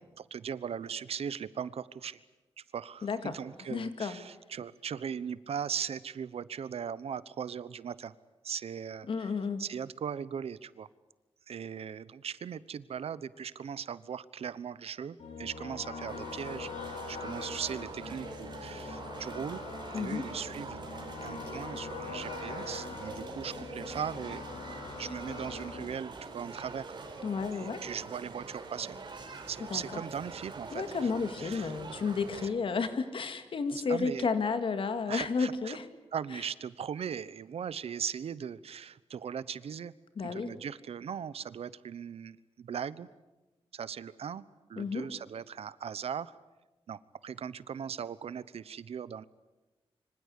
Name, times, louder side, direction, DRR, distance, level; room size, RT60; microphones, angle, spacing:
voice 1, 0.3-2.2 2.7-8.1 8.4-9.3 9.6-10.9 11.5-19.6 19.9-20.8 21.2-24.5 25.0-26.9 27.6-29.0 29.5-30.8 31.4-31.7 33.7-34.3 35.1-35.8 36.1-39.9 40.2-43.1 43.7-44.4 44.7-46.3 46.9-49.2, right 7 dB, 75° right, 17 dB, 1.0 m, -39 dB
voice 2, 3.0-3.4 3.7-4.2 9.1-9.6 19.9-20.3 27.2-27.8 29.7-30.0 30.7-35.9 36.3-36.4 40.2-40.5 44.8-45.1, left 5 dB, 60° left, 9 dB, 2.2 m, -32 dB
sound 1, 15.2-25.9, left 3 dB, 80° left, 6.1 m, -42 dB
sound 2, 16.1-32.5, right 4 dB, 45° right, 4.1 m, -45 dB
26.0 x 25.0 x 8.4 m, 1.1 s
wide cardioid pair, 165°, 10 cm